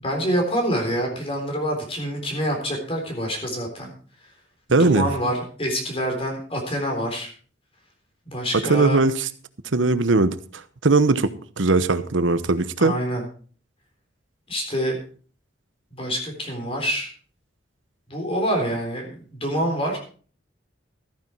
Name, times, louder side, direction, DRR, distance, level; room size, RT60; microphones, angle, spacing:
voice 1, 0.0-3.9 4.8-7.3 8.3-9.0 12.8-13.2 14.5-15.0 15.9-17.1 18.1-20.0, equal, 30° left, 2 dB, 3.8 m, -26 dB
voice 2, 4.7-5.1 8.5-9.3 9.7-10.4 10.8-12.9, right 3 dB, 85° right, 13 dB, 1.0 m, -19 dB
14.0 x 9.6 x 4.5 m, 0.43 s
head